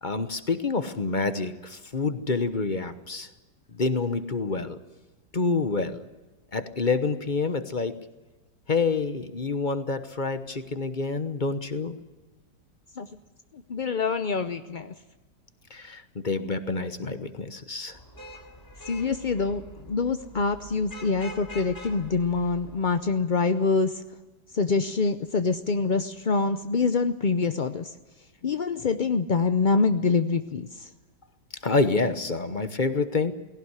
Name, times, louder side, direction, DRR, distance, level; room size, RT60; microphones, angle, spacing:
voice 1, 0.0-3.3 3.7-4.8 5.3-6.1 6.5-8.0 8.7-12.0 15.7-18.0 31.6-33.3, left 4 dB, 30° left, 11 dB, 1.0 m, -27 dB
voice 2, 13.7-14.9 18.9-24.0 24.5-27.9 28.4-30.7, left 4 dB, 50° left, 10 dB, 0.5 m, -25 dB
Vehicle horn car horn honking / Traffic noise roadway noise, 17.9-23.2, left 1 dB, 10° left, 3.4 m, -45 dB
19.0 x 17.0 x 9.8 m, 1.2 s
omnidirectional pair, 1.9 m